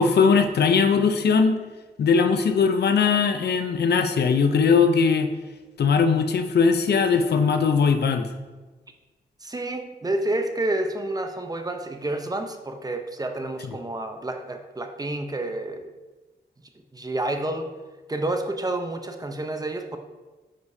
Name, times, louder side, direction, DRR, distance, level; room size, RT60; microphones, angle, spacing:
voice 1, 0.0-1.6 2.0-5.3 5.8-8.3, left 5 dB, 70° left, 7 dB, 0.6 m, -20 dB
voice 2, 9.4-15.9 16.9-17.7 18.1-20.0, right 2 dB, 20° right, 5 dB, 0.7 m, -29 dB
9.4 x 5.1 x 2.8 m, 1.2 s
cardioid pair, 85°, 18 cm